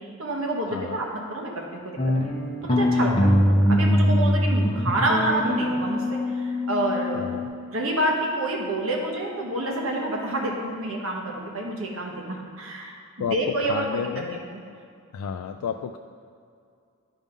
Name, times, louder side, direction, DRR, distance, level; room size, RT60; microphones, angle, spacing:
voice 1, 0.2-2.3 2.6-7.3 7.7-14.6, right 1 dB, 70° right, -1 dB, 1.3 m, -28 dB
voice 2, 0.7-1.0 7.1-7.5 13.2-14.4 15.1-16.0, left 7 dB, 90° left, 8 dB, 0.3 m, -31 dB
sound 1, 2.0-7.5, left 1 dB, 25° left, 0.6 m, -22 dB
10.0 x 3.6 x 5.2 m, 2.3 s
head